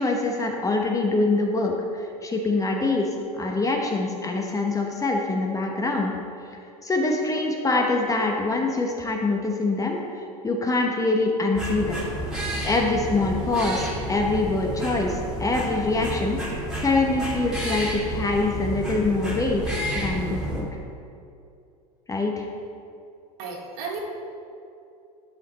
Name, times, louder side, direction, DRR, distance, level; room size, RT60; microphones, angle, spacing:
voice 1, 0.0-6.1 6.8-12.0 12.6-19.6 19.9-20.7 22.1-22.5, left 3 dB, 15° left, 1 dB, 1.0 m, -24 dB
sound 1, 11.5-20.6, right 1 dB, 5° right, 2.2 m, -31 dB
voice 2, 23.4-24.0, right 5 dB, 65° right, -2 dB, 2.2 m, -33 dB
11.0 x 5.7 x 4.1 m, 2.6 s
hypercardioid pair, 105°, 20 cm